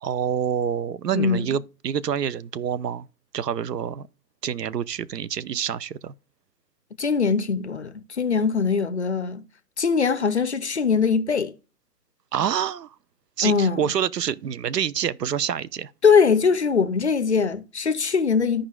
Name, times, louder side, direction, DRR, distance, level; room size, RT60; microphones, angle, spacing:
voice 1, 0.0-3.1 3.3-4.1 4.4-6.1 12.3-12.9 13.4-15.9, right 8 dB, 75° right, 0.7 m, -27 dB
voice 2, 1.1-1.5 7.0-9.4 9.8-11.5 13.4-13.8 16.0-18.6, left 5 dB, 45° left, 0.5 m, -21 dB
14.0 x 5.0 x 2.2 m
hypercardioid pair, 165°, 49 cm